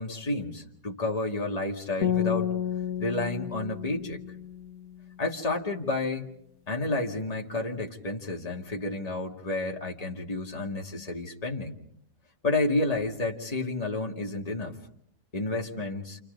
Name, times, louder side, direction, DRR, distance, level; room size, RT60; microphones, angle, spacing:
voice 1, 0.0-2.5 3.0-4.2 5.2-6.3 6.7-11.7 12.4-14.8 15.3-16.2, left 2 dB, 20° left, 0 dB, 2.2 m, -30 dB
sound 1, 2.0-5.2, left 10 dB, 60° left, 2.2 m, -31 dB
29.0 x 28.5 x 5.3 m, 0.65 s
omnidirectional pair, 1.8 m